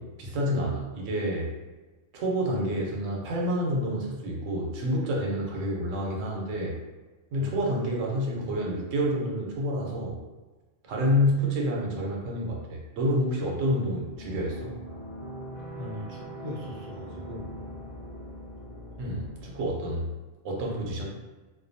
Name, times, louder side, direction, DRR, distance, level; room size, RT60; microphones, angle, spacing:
voice 1, 0.0-1.5 2.1-6.7 7.3-10.2 10.9-14.7 19.0-20.0 20.4-21.1, equal, 85° right, -2 dB, 1.0 m, -28 dB
sound 1, 14.1-20.0, equal, 30° left, 0.8 m, -42 dB
voice 2, 15.8-17.6, left 1 dB, 35° right, -5 dB, 0.5 m, -39 dB
2.4 x 2.2 x 2.6 m, 1.2 s
omnidirectional pair, 1.3 m